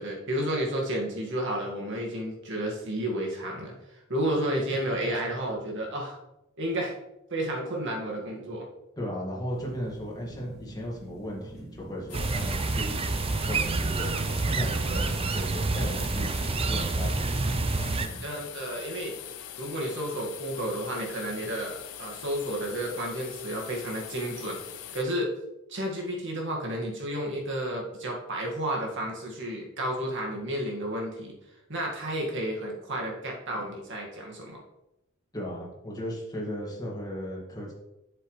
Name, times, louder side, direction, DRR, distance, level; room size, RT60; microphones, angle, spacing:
voice 1, 0.0-6.2 6.6-6.9 7.3-8.7 14.9-15.0 18.2-19.1 19.6-24.6 24.9-25.3 25.7-31.3 31.7-34.6, right 1 dB, 60° right, -1 dB, 2.0 m, -31 dB
voice 2, 9.0-13.0 13.3-18.2 35.3-37.7, equal, 20° left, -3 dB, 2.1 m, -36 dB
sound 1, 9.5-15.1, equal, 5° right, 3.0 m, -47 dB
sound 2, 12.1-25.0, left 10 dB, 80° left, 0.6 m, -43 dB
sound 3, 12.1-18.1, right 3 dB, 25° right, 0.5 m, -28 dB
8.0 x 7.1 x 3.3 m, 0.92 s
head